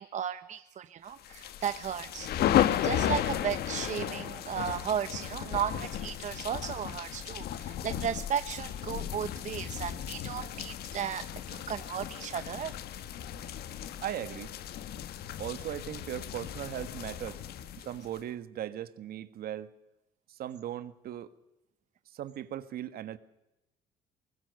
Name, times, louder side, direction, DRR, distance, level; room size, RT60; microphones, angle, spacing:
voice 1, 0.0-2.6 2.8-12.7, right 8 dB, 45° right, 0.8 m, -35 dB
sound 1, 1.2-18.2, left 11 dB, 70° left, 1.3 m, -34 dB
voice 2, 14.0-14.5 15.4-17.4 17.8-19.7 20.3-21.3 22.1-23.2, right 11 dB, 65° right, 1.5 m, -38 dB
24.0 x 21.0 x 6.6 m
cardioid pair, 110°, 17 cm